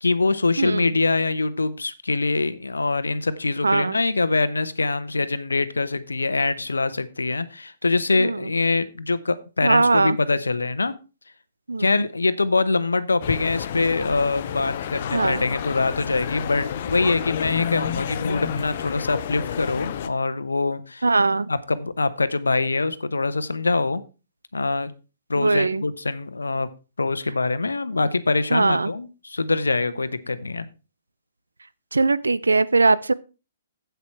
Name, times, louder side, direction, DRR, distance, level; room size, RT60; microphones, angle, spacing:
voice 1, 0.0-10.9 11.8-21.1 21.5-24.0 24.5-24.9 25.3-26.7 27.0-30.7, left 3 dB, 80° left, 14 dB, 0.9 m, -24 dB
voice 2, 0.6-0.9 3.6-4.0 8.2-8.4 9.6-10.2 11.7-11.9 15.1-15.4 21.0-21.5 25.4-25.8 28.5-28.9 31.9-33.1, right 3 dB, 80° right, 17 dB, 0.6 m, -20 dB
sound 1, 13.2-20.1, left 9 dB, 50° left, 0.8 m, -30 dB
8.3 x 8.2 x 4.4 m, 0.31 s
figure-of-eight pair, 125°, 0 cm